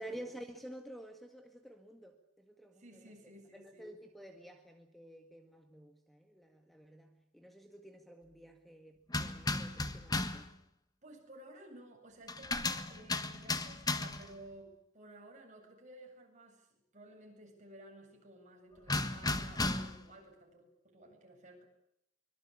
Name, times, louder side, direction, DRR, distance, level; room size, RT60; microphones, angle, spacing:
voice 1, 0.0-10.5, right 1 dB, ahead, 5 dB, 1.7 m, -51 dB
voice 2, 2.8-3.9 11.0-21.6, right 1 dB, 40° right, 2 dB, 7.8 m, -55 dB
sound 1, 9.1-10.5 12.3-14.3 18.9-20.1, left 2 dB, 20° left, 1.5 m, -35 dB
24.5 x 22.5 x 8.7 m, 0.81 s
head